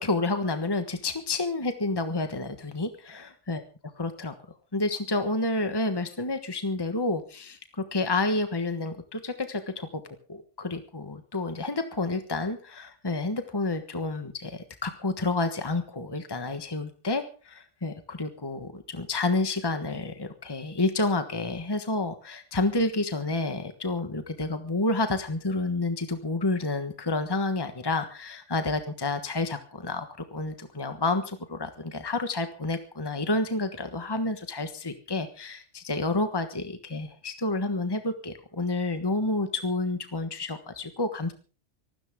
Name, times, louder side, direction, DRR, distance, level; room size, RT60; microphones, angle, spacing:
voice 1, 0.0-3.6 4.0-4.3 4.7-10.0 10.3-41.3, left 2 dB, 20° left, 8 dB, 1.4 m, -29 dB
24.5 x 13.0 x 3.7 m, 0.37 s
omnidirectional pair, 1.2 m